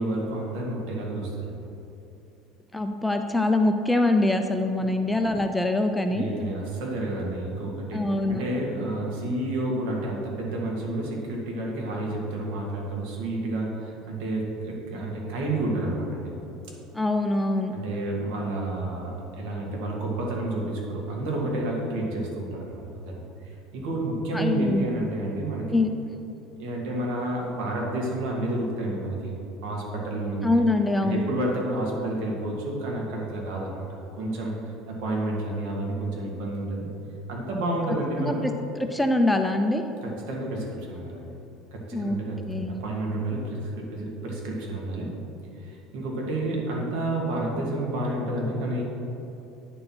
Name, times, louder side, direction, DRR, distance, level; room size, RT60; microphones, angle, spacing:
voice 1, 0.0-1.6 6.1-8.0 8.3-16.3 17.7-25.7 26.6-29.4 29.6-30.5 31.0-36.9 37.3-38.4 40.0-41.3 41.7-45.2 45.6-48.8, right 1 dB, 75° right, -2 dB, 2.0 m, -30 dB
voice 2, 2.7-6.5 7.9-8.4 16.9-17.8 24.3-24.9 25.7-25.9 30.4-31.3 38.2-38.5 38.8-39.8 41.9-42.2 42.5-42.7, left 2 dB, 5° left, 5 dB, 0.4 m, -24 dB
9.6 x 4.6 x 5.7 m, 2.9 s
cardioid pair, 135°, 0 cm